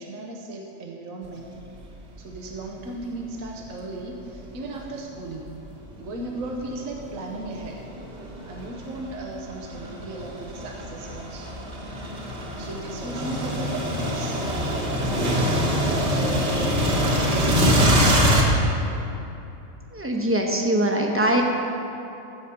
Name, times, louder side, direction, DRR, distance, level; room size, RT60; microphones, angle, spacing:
voice 1, 0.0-1.5 2.2-5.7 6.0-7.8 8.5-11.5 12.6-15.4 16.1-16.7 17.0-18.2, right 2 dB, 75° right, 1 dB, 1.3 m, -36 dB
sound 1, 1.6-1.8 2.3-2.4 3.4-5.1 5.7-18.4, equal, 55° right, 1.7 m, -24 dB
voice 2, 19.9-21.4, right 1 dB, 10° right, 1 dB, 0.9 m, -22 dB
15.0 x 5.0 x 6.9 m, 2.9 s
omnidirectional pair, 1.4 m